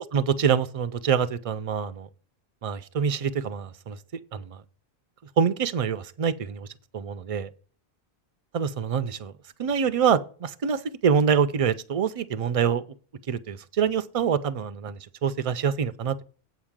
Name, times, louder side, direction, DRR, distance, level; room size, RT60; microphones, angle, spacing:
voice 1, 0.1-2.1 2.6-4.0 4.3-4.6 5.4-6.7 6.9-7.5 8.5-9.3 9.6-12.8 13.3-16.2, right 7 dB, 45° right, 0.4 m, -25 dB
8.0 x 5.0 x 7.3 m
omnidirectional pair, 1.1 m